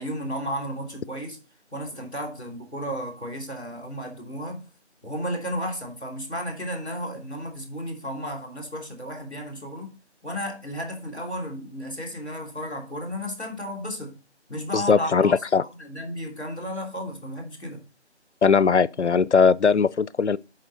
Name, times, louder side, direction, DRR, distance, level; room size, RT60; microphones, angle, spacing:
voice 1, 0.0-1.4 1.7-4.6 5.0-9.9 10.2-14.1 14.5-15.3 15.8-17.8, equal, 10° right, 1.7 m, -33 dB
voice 2, 14.7-15.6 18.4-20.4, left 5 dB, 75° left, 0.6 m, -19 dB
11.5 x 4.4 x 4.0 m
figure-of-eight pair, 170°, 35 cm